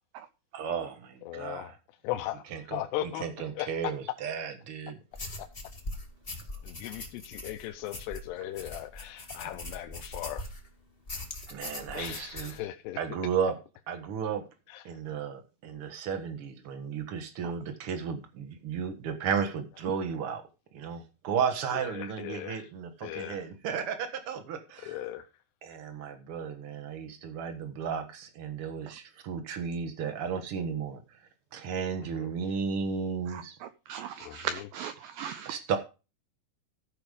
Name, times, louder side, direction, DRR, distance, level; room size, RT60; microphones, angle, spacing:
voice 1, 0.5-1.8 2.5-2.8 3.2-5.0 9.4-9.5 11.5-12.5 13.0-13.5 13.9-14.4 14.8-20.4 20.7-25.0 25.6-31.2 31.5-33.6 35.4-35.8, right 6 dB, 75° right, 1.3 m, -34 dB
voice 2, 1.3-1.7 2.0-3.3 3.6-3.9 5.4-5.5 6.6-10.4 11.9-13.0 14.7-14.8 21.7-22.7 23.0-23.5 24.8-25.3 32.1-32.3 34.2-34.7, left 13 dB, 80° left, 2.8 m, -38 dB
sound 1, 5.1-10.7 11.1-12.6, left 2 dB, 30° left, 1.0 m, -41 dB
voice 3, 33.3-35.6, right 8 dB, 90° right, 2.0 m, -38 dB
15.0 x 5.6 x 5.0 m
omnidirectional pair, 4.9 m